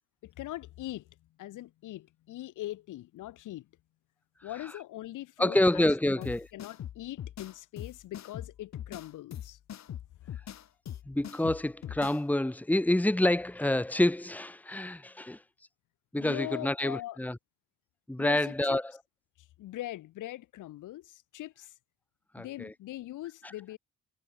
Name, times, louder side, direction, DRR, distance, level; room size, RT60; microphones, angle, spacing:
voice 1, 0.2-3.7 4.4-9.6 10.2-10.3 16.1-17.2 18.2-18.8 19.4-21.7 22.4-23.8, left 15 dB, 85° left, 6.7 m, -42 dB
voice 2, 5.4-6.5 11.0-15.4 16.1-17.4 18.1-18.9 22.3-22.7, left 1 dB, 5° left, 1.7 m, -27 dB
sound 1, 6.2-12.2, left 10 dB, 60° left, 2.3 m, -42 dB
cardioid pair, 90°, 30 cm